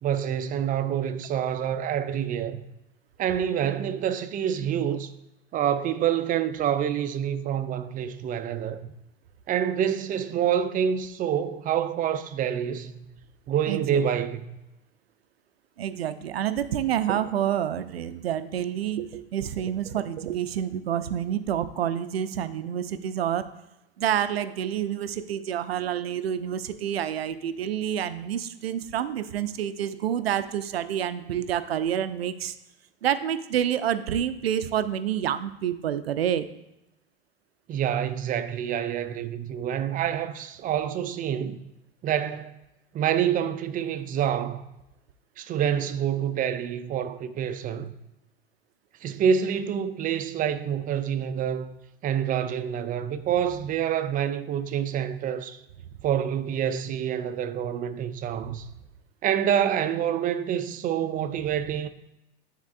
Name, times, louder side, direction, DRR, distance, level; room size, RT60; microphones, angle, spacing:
voice 1, 0.0-2.6 3.2-5.1 5.5-8.9 9.5-13.1 13.5-14.6 37.7-41.6 42.0-42.6 42.9-44.6 45.4-47.9 49.0-51.7 52.0-55.6 56.0-58.7 59.2-61.9, right 9 dB, 30° right, 0.5 m, -27 dB
voice 2, 13.7-14.0 15.8-23.4 24.0-32.5 33.0-36.5, right 10 dB, 85° right, 0.5 m, -28 dB
10.5 x 3.6 x 2.5 m
hypercardioid pair, 85°, 30 cm